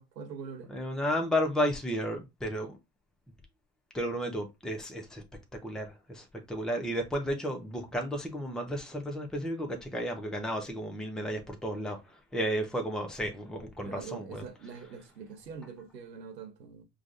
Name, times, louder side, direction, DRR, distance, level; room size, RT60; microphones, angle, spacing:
voice 1, 0.0-0.7 13.8-16.8, right 5 dB, 80° right, 0.9 m, -44 dB
voice 2, 0.7-2.8 3.9-5.2 5.6-14.4, equal, ahead, 0.9 m, -33 dB
6.2 x 2.4 x 2.5 m
figure-of-eight pair, 60°, 49 cm